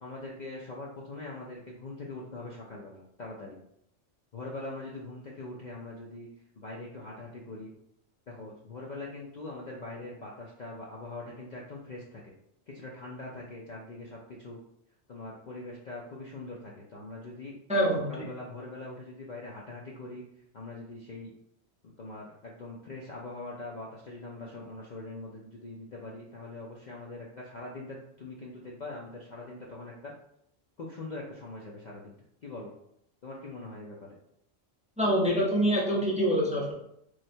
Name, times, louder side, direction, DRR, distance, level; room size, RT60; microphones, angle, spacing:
voice 1, 0.0-3.6 4.3-6.3 6.6-7.7 8.3-12.3 12.7-14.6 15.1-17.5 18.1-20.2 20.5-21.3 21.8-30.1 30.8-32.1 32.4-32.7 33.2-34.1, left 2 dB, 50° left, -3 dB, 0.6 m, -42 dB
voice 2, 17.7-18.0 35.0-36.7, equal, 5° right, -4 dB, 0.6 m, -25 dB
3.1 x 2.3 x 4.3 m, 0.74 s
omnidirectional pair, 1.2 m